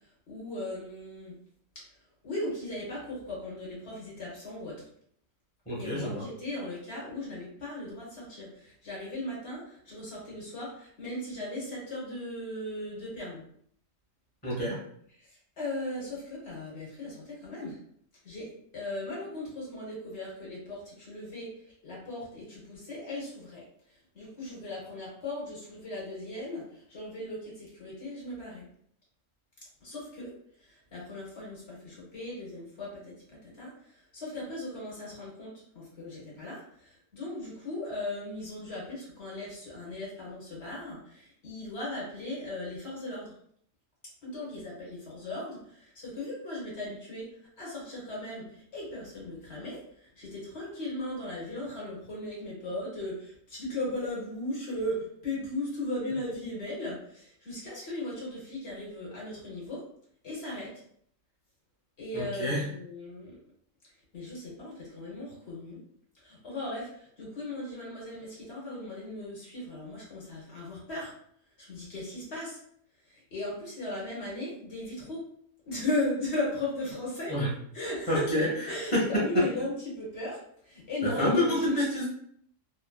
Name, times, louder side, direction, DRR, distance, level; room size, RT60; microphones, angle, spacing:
voice 1, 0.3-1.4 1.7-1.8 2.2-4.8 5.7-13.4 15.2-15.3 15.6-17.8 18.2-21.5 21.8-23.6 24.1-28.6 29.8-30.3 30.6-43.3 44.2-47.3 47.6-59.8 60.2-60.7 62.0-63.3 64.1-65.8 66.1-71.1 71.6-72.6 73.1-75.2 75.7-77.3 77.7-78.3 78.7-81.9, left 1 dB, 55° left, -4 dB, 1.1 m, -37 dB
voice 2, 5.7-6.2 14.4-14.8 62.1-62.7 77.3-77.5 78.1-78.5 78.9-79.5 81.0-82.1, left 1 dB, 10° left, -6 dB, 0.8 m, -27 dB
2.8 x 2.4 x 2.2 m, 0.64 s
omnidirectional pair, 1.4 m